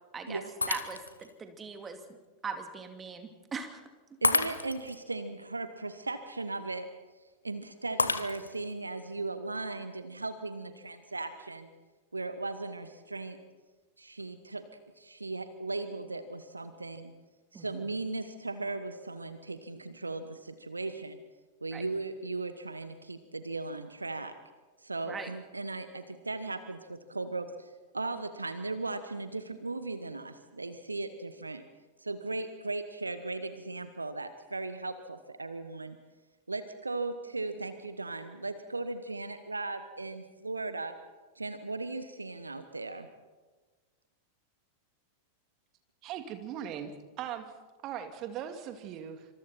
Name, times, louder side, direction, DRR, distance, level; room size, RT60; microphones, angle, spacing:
Shatter, 0.6-1.3 1.9-2.0 4.2-5.0 8.0-8.7, left 3 dB, 80° left, 1.1 m, -30 dB
voice 1, 0.7-2.0 2.4-3.8 17.5-17.9 21.7-21.8 25.1-25.3, right 5 dB, 20° right, 6 dB, 2.6 m, -40 dB
voice 2, 4.2-6.9 7.4-11.7 12.1-13.4 14.0-14.6 15.0-17.1 17.5-21.2 21.6-24.3 24.8-27.7 27.9-31.6 32.0-36.0 36.5-40.9 41.4-43.1, right 3 dB, 80° right, 11 dB, 1.2 m, -37 dB
voice 3, 46.0-47.5 47.8-49.3, right 9 dB, 35° right, 6 dB, 2.5 m, -39 dB
26.5 x 26.0 x 4.4 m, 1.3 s
figure-of-eight pair, 90°, 0 cm